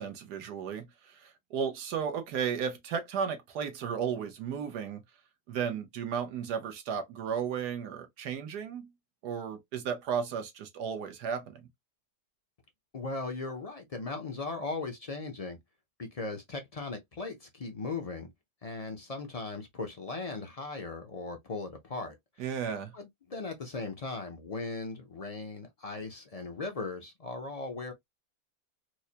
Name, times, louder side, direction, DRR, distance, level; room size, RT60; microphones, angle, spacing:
voice 1, 0.0-5.0 5.5-8.9 9.2-11.7 22.4-22.9, right 7 dB, 85° right, 1.4 m, -34 dB
voice 2, 12.9-15.6 16.0-18.3 18.6-22.1 22.9-27.9, left 3 dB, 50° left, 0.4 m, -38 dB
4.6 x 2.1 x 2.7 m
omnidirectional pair, 1.7 m